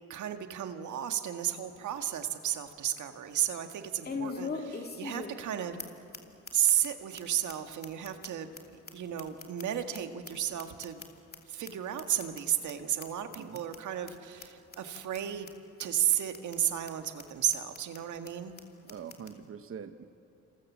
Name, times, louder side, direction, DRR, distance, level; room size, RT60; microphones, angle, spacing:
voice 1, 0.1-5.8 6.5-8.5 8.9-11.0 11.5-15.5 15.8-18.6, right 10 dB, 75° right, 7 dB, 1.8 m, -33 dB
sound 1, 1.7-1.8 2.2-2.3 4.0-5.5 5.8-5.9 6.1-6.2 6.5-6.9 7.2-7.3 7.5-7.6 7.8-10.0 10.2-11.4 11.6-11.7 12.0-12.4 12.7-12.8 13.0-13.1 13.3-13.8 14.1-14.2 14.4-14.5 14.7-15.2 15.5-15.6 15.8-15.9 16.1-16.6 16.9-17.0 17.2-17.3 17.5-18.0 18.3-18.4 18.6-18.7 18.9-19.3, left 4 dB, 30° left, 2.6 m, -40 dB
voice 2, 18.9-20.0, right 7 dB, 45° right, 9 dB, 1.0 m, -44 dB
28.0 x 27.5 x 7.4 m, 2.7 s
cardioid pair, 90°, 30 cm